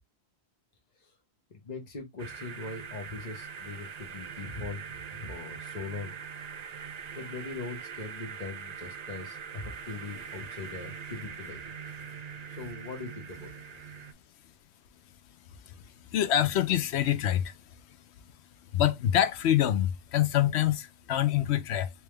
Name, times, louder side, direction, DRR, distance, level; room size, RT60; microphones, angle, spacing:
voice 1, 1.5-6.1 7.1-11.6 12.5-13.5, left 3 dB, 40° left, 1.1 m, -41 dB
sound 1, 2.2-14.1, right 6 dB, 50° right, 0.5 m, -42 dB
voice 2, 16.1-17.6 18.7-21.9, left 11 dB, 85° left, 0.9 m, -25 dB
3.3 x 3.1 x 3.2 m
omnidirectional pair, 1.1 m